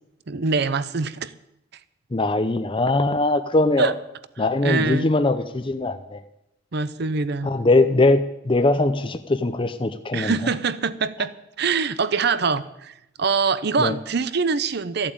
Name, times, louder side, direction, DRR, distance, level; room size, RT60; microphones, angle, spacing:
voice 1, 0.3-1.3 3.8-3.9 4.6-5.1 6.7-7.6 10.1-15.1, right 4 dB, 60° right, 15 dB, 0.7 m, -24 dB
voice 2, 2.1-3.9 4.4-6.2 7.4-10.4 13.8-13.9, left 2 dB, 25° left, 8 dB, 0.6 m, -21 dB
14.0 x 8.7 x 8.6 m, 0.86 s
head